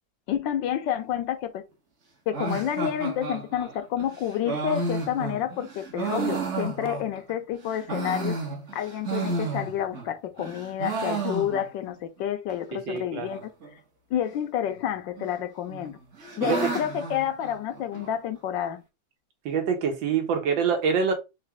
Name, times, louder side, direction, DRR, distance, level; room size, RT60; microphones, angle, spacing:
voice 1, 0.3-1.6 2.3-8.4 8.7-13.4 14.1-16.0 16.4-18.8, left 10 dB, 75° left, 1.3 m, -29 dB
sound 1, 2.3-7.3 7.7-10.1 10.4-11.9 12.2-12.3 12.5-12.6 13.2-13.7 14.7-15.3 15.7-18.1, right 3 dB, 45° right, 1.2 m, -32 dB
voice 2, 12.7-13.3 16.4-16.6 19.5-21.1, right 6 dB, 75° right, 1.7 m, -25 dB
4.1 x 3.3 x 3.5 m
omnidirectional pair, 2.1 m